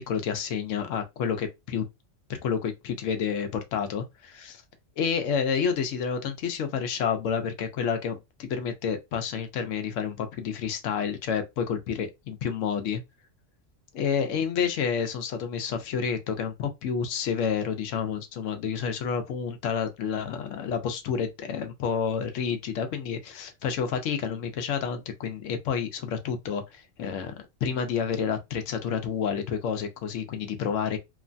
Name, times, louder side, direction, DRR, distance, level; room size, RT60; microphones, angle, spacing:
voice 1, 0.0-1.8 2.3-4.6 5.0-13.0 13.9-31.0, left 7 dB, 80° left, 1.0 m, -29 dB
3.1 x 2.1 x 2.5 m
omnidirectional pair, 1.3 m